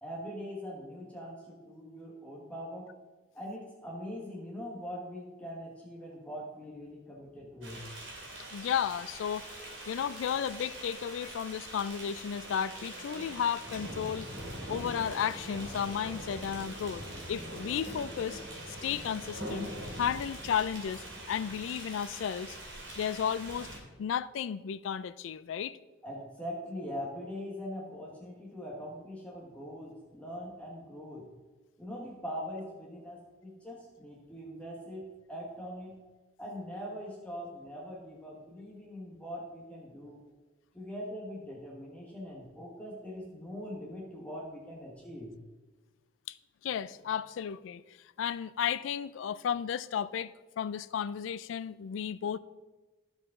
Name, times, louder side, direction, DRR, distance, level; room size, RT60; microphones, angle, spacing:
voice 1, 0.0-2.9 3.3-7.8 26.0-31.3 31.8-36.0 36.4-40.2 40.7-45.3, equal, 5° left, 1.2 m, -42 dB
sound 1, 7.6-23.8, right 1 dB, 75° right, 2.2 m, -43 dB
voice 2, 8.5-9.5 9.9-14.3 14.7-17.0 17.3-18.4 18.8-19.7 20.0-22.6 23.0-23.7 24.0-25.8 46.3-46.4 46.6-47.8 48.2-52.4, left 8 dB, 75° left, 0.3 m, -33 dB
13.5 x 4.9 x 3.6 m
head